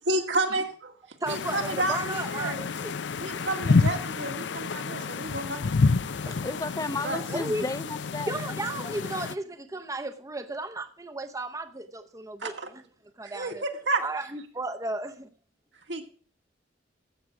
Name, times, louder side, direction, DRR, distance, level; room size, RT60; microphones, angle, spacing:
voice 1, 0.1-0.9 1.3-2.6 3.2-5.7 7.0-7.2 12.4-12.7 13.2-14.0 15.9-16.0, right 2 dB, 80° right, 2.1 m, -30 dB
voice 2, 1.2-2.9 5.4-5.5 6.2-6.4 7.3-7.6 8.3-12.5 13.2-13.6 14.0-15.3, right 2 dB, 20° right, 0.7 m, -34 dB
sound 1, 1.3-9.3, left 4 dB, 75° left, 0.5 m, -29 dB
voice 3, 6.4-9.0, left 2 dB, 20° left, 0.6 m, -34 dB
13.5 x 7.8 x 5.9 m
head